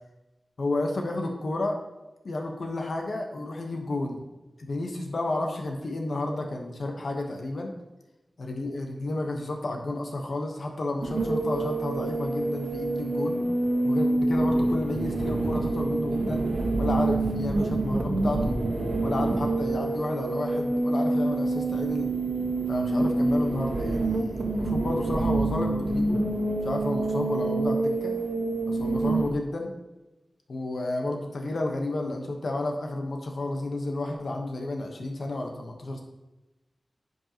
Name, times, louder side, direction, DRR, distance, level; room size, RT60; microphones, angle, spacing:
voice 1, 0.6-1.8 2.2-4.2 4.6-7.7 8.4-13.4 13.8-16.5 16.8-18.5 19.0-22.1 22.7-26.2 26.6-28.1 28.7-29.7 30.5-36.0, left 2 dB, 75° left, 2 dB, 1.2 m, -31 dB
sound 1, 11.0-29.3, right 2 dB, 80° right, 1.4 m, -27 dB
10.5 x 5.4 x 3.0 m, 1.0 s
wide cardioid pair, 60°, 0 cm